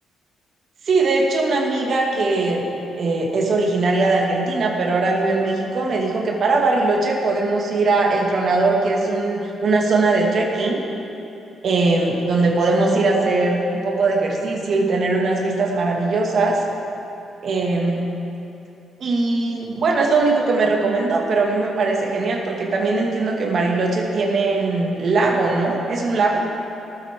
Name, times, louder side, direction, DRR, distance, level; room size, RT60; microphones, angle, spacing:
voice 1, 0.9-2.6 2.9-10.8 11.6-16.6 17.4-18.1 19.0-26.4, right 3 dB, 55° right, -1 dB, 2.0 m, -20 dB
18.5 x 8.1 x 3.7 m, 2.9 s
cardioid pair, 90°, 0 cm